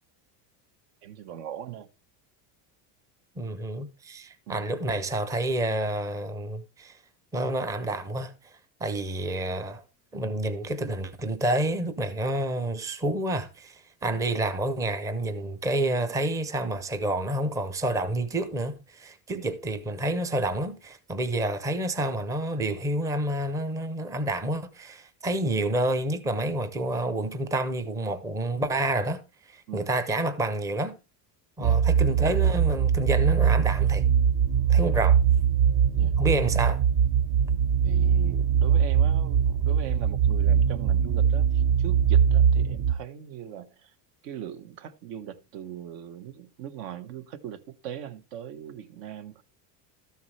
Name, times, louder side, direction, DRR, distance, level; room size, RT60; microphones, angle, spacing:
voice 1, 1.0-1.9 4.5-4.7 19.3-19.5 29.7-29.9 31.6-31.8 34.8-34.9 36.0-36.2 37.8-43.9 44.2-49.4, right 10 dB, 75° right, 1.2 m, -40 dB
voice 2, 3.4-7.0 7.3-8.3 8.8-9.8 10.1-29.2 29.5-30.9 31.6-34.0 34.7-35.2 36.2-36.8, right 1 dB, 5° right, 0.4 m, -29 dB
sound 1, 31.6-42.9, right 8 dB, 55° right, 0.8 m, -22 dB
12.5 x 7.1 x 3.2 m
cardioid pair, 145°, 49 cm